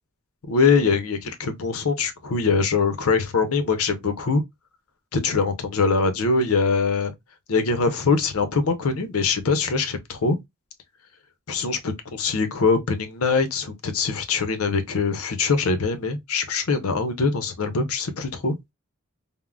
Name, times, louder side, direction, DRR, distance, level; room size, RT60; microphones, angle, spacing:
voice 1, 0.5-4.4 5.1-7.1 7.5-10.4 11.5-18.6, left 4 dB, 80° left, 0.6 m, -23 dB
3.5 x 2.0 x 2.3 m
head